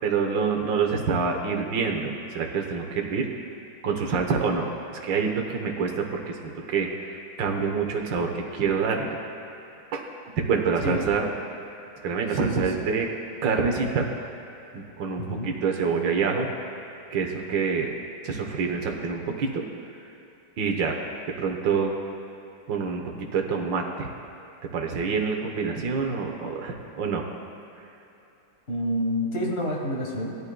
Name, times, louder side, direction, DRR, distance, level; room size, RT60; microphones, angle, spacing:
voice 1, 0.0-3.3 3.8-4.7 5.0-9.2 9.9-10.0 10.4-11.3 12.0-13.1 13.4-14.1 14.7-16.5 17.1-17.9 18.2-19.6 20.6-21.0 21.4-21.9 22.7-24.1 24.6-27.3, right 5 dB, 70° right, 2 dB, 1.7 m, -26 dB
voice 2, 12.3-12.6 15.2-15.5 28.7-30.4, equal, 35° left, -1 dB, 1.5 m, -28 dB
19.0 x 11.0 x 2.3 m, 2.8 s
omnidirectional pair, 2.1 m